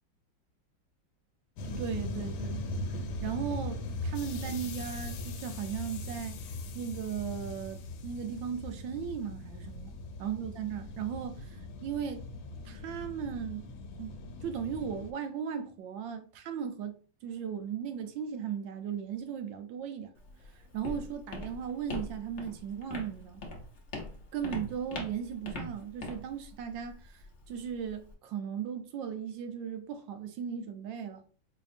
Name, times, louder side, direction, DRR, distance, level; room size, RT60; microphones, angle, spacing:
sound 1, 1.6-15.1, left 1 dB, 90° left, 1.4 m, -39 dB
voice 1, 1.6-2.6 3.2-6.4 6.7-9.9 10.2-12.3 12.6-13.7 14.0-16.9 17.2-20.1 20.5-23.4 24.3-31.2, right 8 dB, 80° right, 1.3 m, -37 dB
Walk footsteps, 20.2-28.1, left 2 dB, 50° left, 0.8 m, -43 dB
4.1 x 2.8 x 2.5 m
omnidirectional pair, 2.1 m